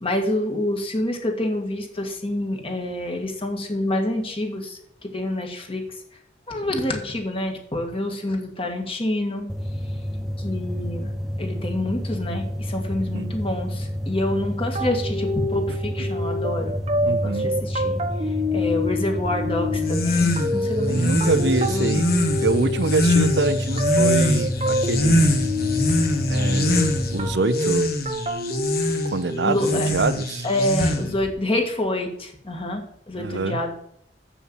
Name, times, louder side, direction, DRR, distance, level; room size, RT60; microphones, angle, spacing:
voice 1, 0.0-6.0 6.5-9.5 10.4-11.1 11.4-16.7 17.0-22.0 29.4-29.9 30.4-33.7, left 1 dB, 30° left, 3 dB, 1.9 m, -27 dB
sound 1, 9.5-27.4, equal, ahead, 0.4 m, -29 dB
sound 2, 14.7-30.1, left 1 dB, 35° right, 1.1 m, -27 dB
voice 2, 17.0-17.5 20.9-22.0 22.4-25.3 26.3-26.8 27.1-27.9 29.1-30.4 33.2-33.6, right 3 dB, 75° right, 13 dB, 0.7 m, -25 dB
sound 3, 19.8-31.3, left 1 dB, 55° left, 1.4 m, -24 dB
7.6 x 7.0 x 7.3 m, 0.72 s
head